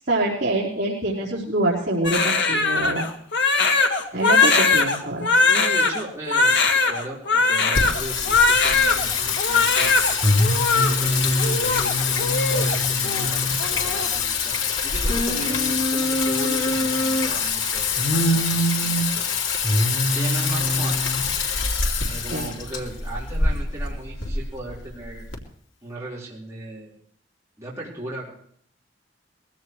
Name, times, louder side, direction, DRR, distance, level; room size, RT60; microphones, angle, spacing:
voice 1, 0.1-3.1 4.1-5.3 22.3-22.5, right 1 dB, 55° right, -6 dB, 4.2 m, -25 dB
Crying sobbing, 2.0-9.0 9.4-10.1 10.4-10.9 11.4-12.8 13.0-13.3 13.6-14.1, left 4 dB, 60° left, 2.0 m, -20 dB
voice 2, 5.4-6.6 6.8-9.9 10.7-14.5 14.8-19.3 19.8-21.0 22.0-25.2 25.8-27.0 27.6-28.3, right 1 dB, 15° right, -7 dB, 4.4 m, -36 dB
Singing, 7.7-25.3, left 3 dB, 85° left, 2.9 m, -23 dB
22.0 x 16.5 x 3.2 m, 0.64 s
head